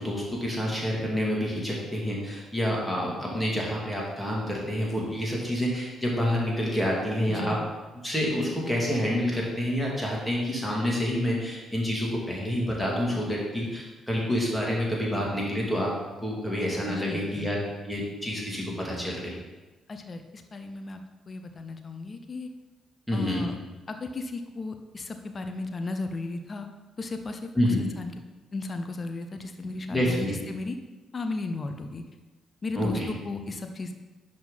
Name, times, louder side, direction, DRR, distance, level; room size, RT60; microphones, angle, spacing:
voice 1, 0.0-7.6 8.0-15.9 16.2-17.6 17.8-19.2 23.1-23.4 27.5-27.8 29.9-30.4 32.8-33.1, equal, 5° left, -4 dB, 2.5 m, -28 dB
voice 2, 7.3-7.6 16.9-17.5 19.9-21.0 21.3-22.5 23.1-23.5 23.9-26.7 27.0-28.1 28.5-30.8 31.1-32.0 32.6-33.9, left 3 dB, 35° left, 6 dB, 0.7 m, -35 dB
10.5 x 3.7 x 4.1 m, 1.2 s
figure-of-eight pair, 40°, 0 cm